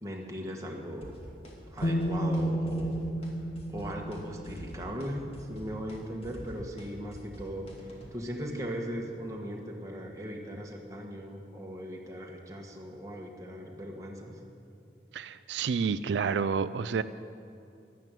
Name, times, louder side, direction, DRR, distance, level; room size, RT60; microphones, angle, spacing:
voice 1, 0.0-1.2 1.7-2.9 3.7-7.7 8.1-14.4, equal, 20° right, 0 dB, 1.6 m, -38 dB
sound 1, 1.0-1.5 1.8-2.4 2.7-3.3 3.6-4.2 4.4-8.1, equal, 30° left, 2.2 m, -46 dB
sound 2, 1.8-5.8, right 1 dB, 50° left, 1.3 m, -32 dB
voice 2, 15.1-17.0, right 6 dB, 80° right, 13 dB, 0.4 m, -29 dB
12.5 x 12.0 x 9.1 m, 2.6 s
head